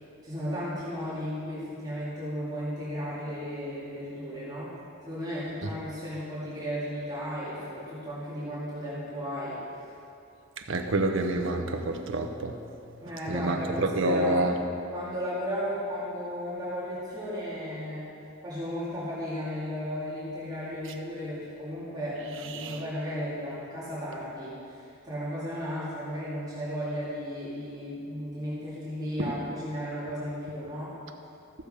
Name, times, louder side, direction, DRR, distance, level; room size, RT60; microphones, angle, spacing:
voice 1, 0.2-4.7 5.1-9.6 13.0-14.4 14.9-18.1 18.4-31.0, equal, 20° right, -10 dB, 2.5 m, -35 dB
voice 2, 10.7-12.6 13.3-14.6 22.5-22.7 29.2-29.3, right 2 dB, 65° right, 4 dB, 0.9 m, -27 dB
14.5 x 6.8 x 5.0 m, 2.6 s
head